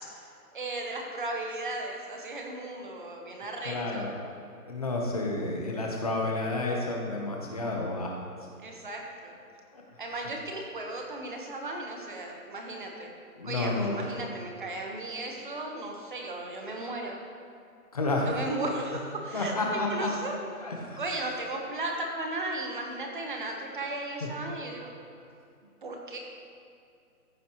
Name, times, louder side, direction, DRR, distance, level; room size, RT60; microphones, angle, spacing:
voice 1, 0.5-4.1 8.6-9.4 10.0-13.1 13.4-17.2 18.3-20.4 21.0-24.9 25.8-26.2, right 2 dB, 35° right, 1 dB, 1.1 m, -36 dB
voice 2, 3.6-4.2 4.7-8.1 8.4-8.5 9.7-10.3 13.4-14.1 17.9-18.3 19.3-20.1 20.6-21.0 24.2-24.3, left 2 dB, 25° left, -1 dB, 0.9 m, -31 dB
14.5 x 6.6 x 3.0 m, 2.5 s
hypercardioid pair, 175°, 44 cm